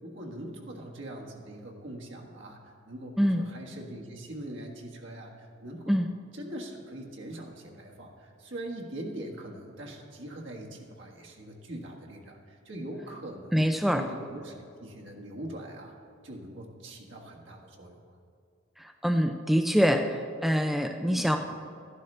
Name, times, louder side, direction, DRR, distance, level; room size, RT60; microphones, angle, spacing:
voice 1, 0.0-6.0 6.3-15.9 16.2-18.0 21.0-21.4, right 1 dB, 65° right, 0 dB, 1.5 m, -42 dB
voice 2, 13.5-14.0 19.0-20.0 20.4-21.4, equal, ahead, 5 dB, 0.4 m, -24 dB
13.0 x 11.5 x 3.3 m, 2.3 s
head